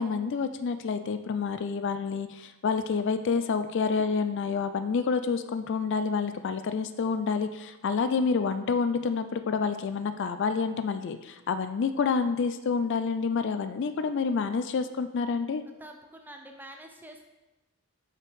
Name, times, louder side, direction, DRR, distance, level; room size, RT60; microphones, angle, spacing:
voice 1, 0.0-15.6, left 5 dB, 55° left, 10 dB, 0.3 m, -28 dB
voice 2, 15.7-17.3, right 1 dB, 10° right, 3 dB, 0.6 m, -47 dB
5.7 x 5.2 x 4.7 m, 1.0 s
head